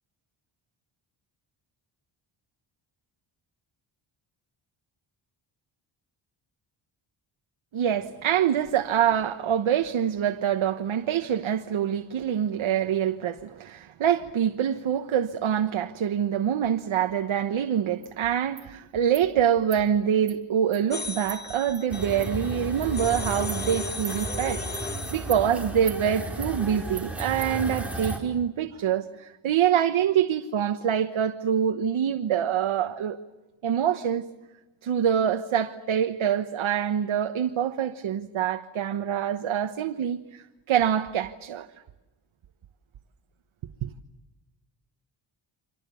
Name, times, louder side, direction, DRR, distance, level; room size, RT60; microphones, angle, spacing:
voice 1, 7.7-33.2 33.6-34.3 34.8-41.7 43.8-43.9, right 9 dB, 75° right, 1.3 m, -25 dB
Insect, 18.0-18.1 18.6-18.7 19.1-19.3 19.7-19.8 20.3-20.4 20.7-20.8 21.3-21.4 21.7-21.8 22.2-22.3 22.8-22.9 23.5-23.6 24.0-24.2 24.7-24.9 25.3-25.4 25.9-26.0 26.4-26.5 27.0-27.1 27.4-27.5, right 6 dB, 40° right, 2.3 m, -39 dB
sound 1, 20.9-25.4, left 3 dB, 20° left, 1.4 m, -36 dB
sound 2, 21.9-28.2, right 1 dB, 5° right, 5.0 m, -34 dB
30.0 x 26.0 x 7.0 m
wide cardioid pair, 135°, 49 cm